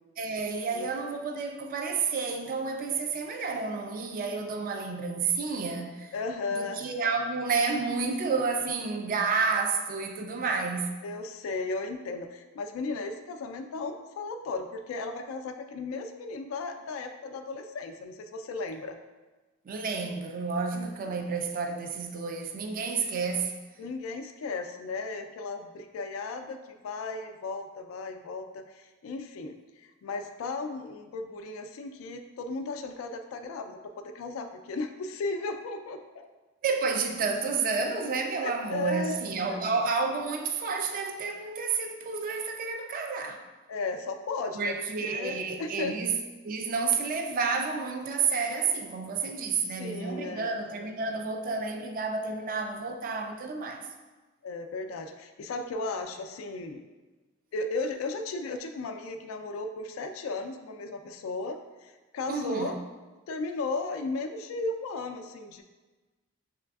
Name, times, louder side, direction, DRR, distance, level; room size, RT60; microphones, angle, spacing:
voice 1, 0.2-6.1 6.5-10.9 19.7-23.5 36.6-43.4 44.6-46.2 46.4-53.9 62.3-62.7, right 4 dB, 45° right, 4 dB, 0.3 m, -30 dB
voice 2, 6.1-6.8 11.0-19.0 20.7-21.2 23.8-29.5 29.8-36.3 38.4-39.2 39.5-39.6 43.7-44.7 45.0-46.0 49.7-50.5 54.4-56.8 57.5-62.8 63.3-65.6, left 3 dB, 90° left, 6 dB, 0.3 m, -35 dB
6.0 x 3.2 x 2.3 m, 1.2 s
head